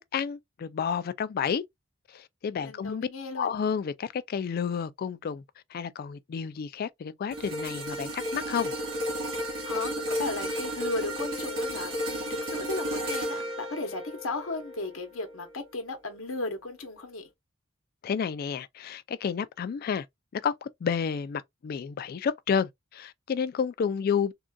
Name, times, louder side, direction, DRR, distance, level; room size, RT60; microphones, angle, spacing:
voice 1, 0.0-1.6 2.1-3.1 3.4-5.4 5.7-8.7 18.0-20.1 20.3-24.3, left 7 dB, 50° left, 0.3 m, -30 dB
voice 2, 2.6-3.6 9.6-17.3, left 2 dB, 80° left, 0.9 m, -35 dB
sound 1, 7.3-15.7 16.1-16.3, equal, 70° right, 2.1 m, -33 dB
3.7 x 2.4 x 2.2 m
head